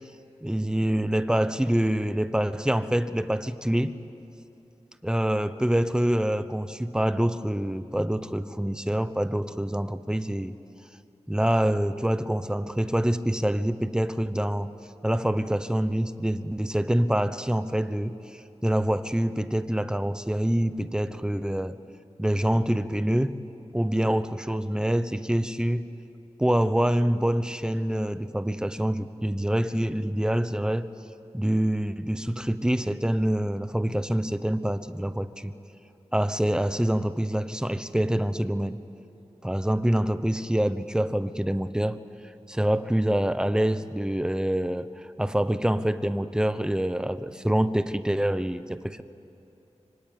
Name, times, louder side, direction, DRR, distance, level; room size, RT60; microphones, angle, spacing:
voice 1, 0.4-4.0 5.0-10.5 11.3-14.7 15.0-18.2 18.6-21.8 22.2-25.9 26.4-30.9 31.3-35.5 36.1-38.8 39.4-42.0 42.5-44.9 45.2-49.0, right 1 dB, 5° right, 12 dB, 0.9 m, -26 dB
25.0 x 24.5 x 9.3 m, 2.8 s
wide cardioid pair, 90°, 12 cm